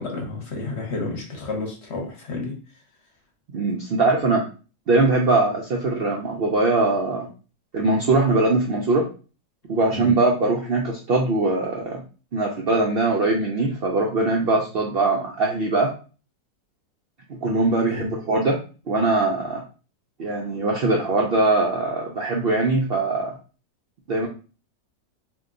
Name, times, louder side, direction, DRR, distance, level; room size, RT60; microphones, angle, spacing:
voice 1, 0.0-2.6 9.9-10.2 17.9-18.1, left 3 dB, 50° left, 0 dB, 1.1 m, -31 dB
voice 2, 3.5-4.4 4.9-7.3 7.7-9.0 9.7-12.0 12.3-15.9 17.3-18.6 18.9-19.6 20.2-23.4 24.1-24.3, right 3 dB, 75° right, -1 dB, 0.5 m, -21 dB
2.8 x 2.1 x 3.6 m, 0.35 s
omnidirectional pair, 1.6 m